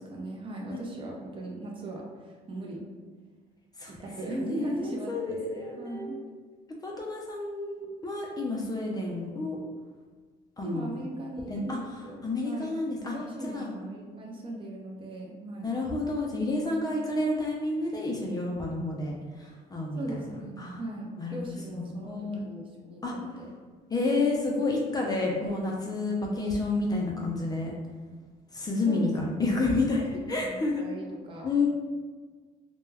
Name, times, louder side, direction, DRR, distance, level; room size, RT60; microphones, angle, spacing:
voice 1, 0.0-2.8 3.9-6.2 10.6-12.7 13.1-15.7 20.0-23.5 25.0-25.2 28.9-31.7, right 1 dB, 30° right, -2 dB, 0.6 m, -39 dB
voice 2, 4.4-6.2 6.8-9.6 10.6-10.9 11.5-11.8 12.2-13.1 13.4-13.7 15.6-20.2 20.6-20.8 21.2-22.4 23.0-23.1 23.9-27.7 28.5-30.8 31.4-31.7, left 2 dB, 25° left, -2 dB, 0.4 m, -30 dB
2.2 x 2.1 x 3.3 m, 1.5 s
cardioid pair, 110°, 17 cm